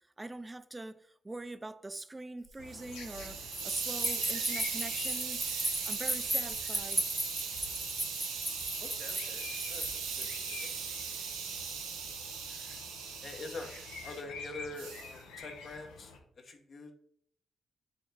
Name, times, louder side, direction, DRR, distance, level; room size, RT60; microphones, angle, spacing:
voice 1, 0.2-5.4 5.9-7.0, right 2 dB, 25° right, 0.4 m, -43 dB
Hiss, 2.5-14.2 14.8-15.1, right 6 dB, 85° right, 0.6 m, -39 dB
sound 1, 2.6-16.2, left 4 dB, 85° left, 0.6 m, -48 dB
sound 2, 3.5-10.5, equal, ahead, 1.0 m, -36 dB
voice 2, 8.8-10.6 11.8-11.9 13.2-13.8 14.0-16.1 16.4-16.9, left 3 dB, 55° left, 0.9 m, -45 dB
4.2 x 3.1 x 4.0 m
hypercardioid pair, 40°, 0 cm